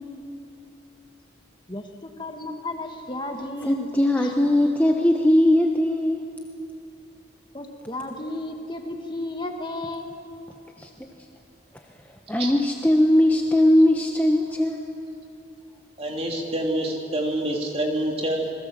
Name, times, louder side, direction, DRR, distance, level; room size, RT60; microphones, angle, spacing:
voice 1, 1.7-3.9 4.2-4.3 7.5-10.2, left 2 dB, 25° left, 4 dB, 1.5 m, -33 dB
voice 2, 3.6-6.2 10.8-10.9 12.3-14.9, left 1 dB, 10° left, 2 dB, 1.0 m, -19 dB
voice 3, 16.0-18.5, right 1 dB, 30° right, 1 dB, 3.1 m, -26 dB
28.0 x 21.0 x 7.5 m, 2.7 s
head